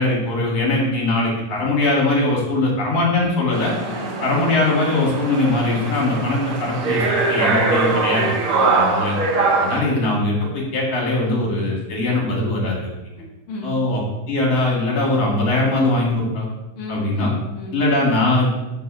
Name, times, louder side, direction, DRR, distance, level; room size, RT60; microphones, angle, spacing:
voice 1, 0.0-3.7 4.2-7.0 7.3-8.3 8.8-9.1 9.6-12.9 13.6-14.0 14.3-16.5 16.9-17.3 17.7-18.5, left 2 dB, 50° left, -3 dB, 3.0 m, -20 dB
sound 1, 3.5-9.8, right 3 dB, 90° right, 1.1 m, -22 dB
voice 2, 3.8-4.4 8.5-8.8 13.1-13.8 16.8-17.8, equal, 65° left, -2 dB, 1.3 m, -34 dB
6.8 x 4.7 x 6.5 m, 1.0 s
omnidirectional pair, 4.1 m